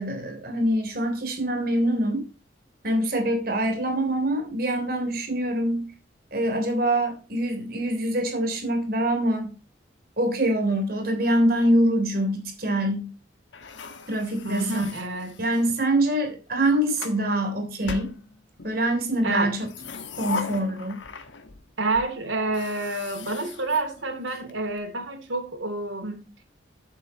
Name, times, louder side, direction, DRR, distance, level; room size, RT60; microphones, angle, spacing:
voice 1, 0.0-2.2 2.8-5.9 6.3-9.5 10.2-13.1 14.1-14.9 15.4-18.1 18.6-19.7 20.2-21.0, right 1 dB, 50° right, 3.4 m, -24 dB
sound 1, 13.5-15.8 16.5-17.2 17.8-18.8 19.5-21.6 21.9-22.0 22.4-24.5, left 5 dB, 80° left, 1.3 m, -38 dB
voice 2, 14.4-15.4 19.2-19.5 21.8-26.3, right 2 dB, 90° right, 3.1 m, -28 dB
11.5 x 7.8 x 3.1 m
head